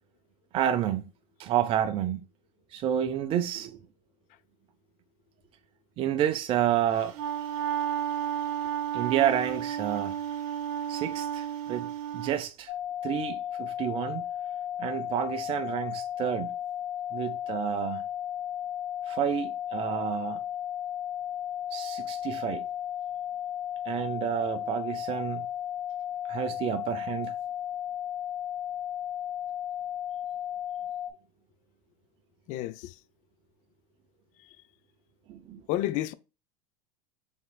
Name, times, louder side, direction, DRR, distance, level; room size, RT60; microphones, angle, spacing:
voice 1, 0.5-1.0 1.4-2.2 2.7-3.8 6.0-7.1 8.9-10.2 10.9-12.7 13.0-14.2 14.8-16.5 17.1-18.0 19.1-20.4 21.7-22.6 23.9-25.5 26.3-27.3 35.3-35.6, right 10 dB, 30° right, 0.5 m, -29 dB
Wind instrument woodwind instrument, 6.9-12.4, right 9 dB, 60° right, 1.1 m, -32 dB
sound 1, 12.7-31.1, left 10 dB, 75° left, 1.1 m, -34 dB
voice 2, 32.5-32.9 35.7-36.1, left 14 dB, 45° left, 0.4 m, -30 dB
5.4 x 3.5 x 2.2 m
supercardioid pair, 120°, 17 cm